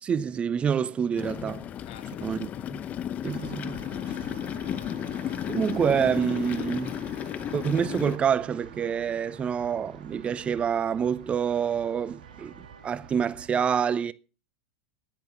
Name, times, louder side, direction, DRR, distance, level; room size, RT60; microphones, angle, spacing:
voice 1, 0.0-1.7 2.2-2.8 3.2-3.8 5.5-6.9 7.5-14.1, right 7 dB, 25° right, 0.7 m, -27 dB
sound 1, 1.2-8.2, left 10 dB, 35° left, 0.9 m, -34 dB
voice 2, 1.9-2.7 4.0-5.1, left 11 dB, 65° left, 1.9 m, -52 dB
sound 2, 3.2-13.5, right 6 dB, 70° right, 2.2 m, -47 dB
10.5 x 10.5 x 7.0 m
hypercardioid pair, 90°, 5 cm